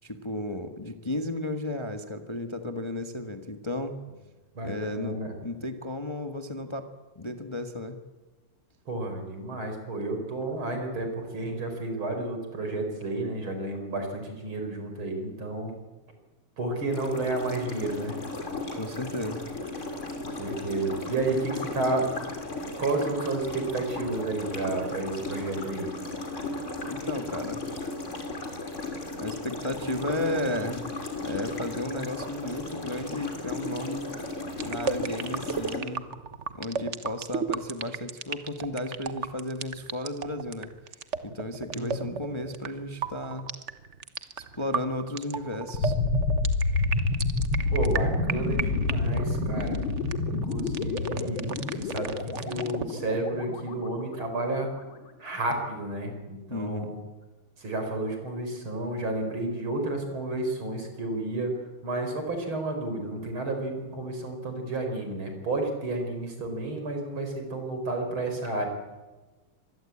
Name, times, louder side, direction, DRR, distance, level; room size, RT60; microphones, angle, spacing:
voice 1, 0.0-3.9 4.6-5.2 5.4-6.9 7.1-8.0 18.8-19.5 26.9-27.6 29.2-30.8 31.2-34.1 34.6-36.1 36.5-40.7 41.2-43.5 44.4-45.9 56.5-56.9, left 1 dB, 15° left, 6 dB, 1.4 m, -33 dB
voice 2, 4.5-5.3 8.9-15.7 16.6-18.2 20.3-22.1 22.8-25.9 41.7-42.0 47.7-49.8 50.2-54.7 55.2-57.0 57.6-61.5 61.8-68.7, right 2 dB, 70° right, 4 dB, 5.7 m, -31 dB
sound 1, 16.9-35.8, left 2 dB, 35° left, 3.5 m, -36 dB
sound 2, 34.5-52.9, right 6 dB, 40° right, 1.2 m, -35 dB
sound 3, 45.7-54.6, left 3 dB, 70° left, 3.4 m, -28 dB
25.0 x 20.5 x 8.6 m, 1.2 s
omnidirectional pair, 2.3 m